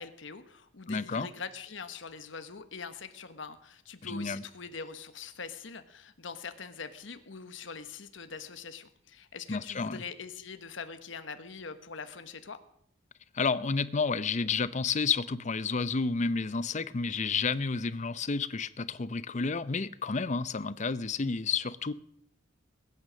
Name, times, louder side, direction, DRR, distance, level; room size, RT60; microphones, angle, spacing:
voice 1, 0.0-12.6, left 5 dB, 70° left, 1.2 m, -43 dB
voice 2, 0.9-1.3 4.0-4.4 9.5-10.0 13.3-21.9, left 4 dB, 35° left, 0.6 m, -30 dB
21.0 x 9.4 x 6.3 m
head